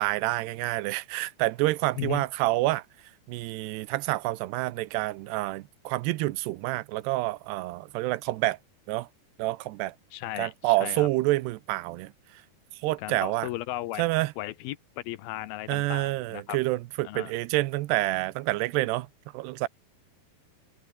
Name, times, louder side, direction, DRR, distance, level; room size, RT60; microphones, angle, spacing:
voice 1, 0.0-2.8 3.3-8.6 8.9-9.1 9.4-9.9 10.4-12.1 12.8-13.5 14.0-14.3 15.7-19.1 19.3-19.7, right 18 dB, 80° right, 2.9 m, -28 dB
voice 2, 10.1-11.1 13.0-14.0 14.4-16.6 17.0-17.3, left 16 dB, 75° left, 2.5 m, -36 dB
omnidirectional pair, 4.8 m